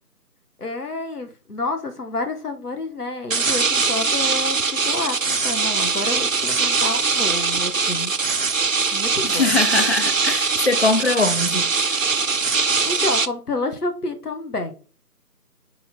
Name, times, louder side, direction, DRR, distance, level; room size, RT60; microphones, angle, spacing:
voice 1, 0.6-8.1 8.9-9.6 12.8-14.7, left 2 dB, 75° left, 1.3 m, -29 dB
sound 1, 3.3-13.3, right 4 dB, 60° right, 0.6 m, -22 dB
voice 2, 9.2-12.0, left 3 dB, 45° left, 0.5 m, -22 dB
5.0 x 4.8 x 4.1 m
figure-of-eight pair, 165°, 46 cm